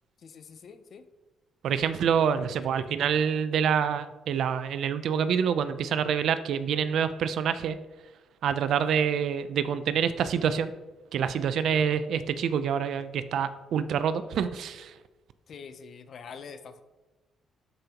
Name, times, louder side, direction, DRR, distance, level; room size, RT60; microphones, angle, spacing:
voice 1, 0.2-1.1 11.7-11.8 15.5-16.8, left 6 dB, 60° left, 10 dB, 0.7 m, -45 dB
voice 2, 1.6-7.8 8.4-10.7 11.1-14.9, right 7 dB, 70° right, 12 dB, 0.5 m, -26 dB
12.5 x 5.2 x 2.9 m, 1.1 s
cardioid pair, 90°, 0 cm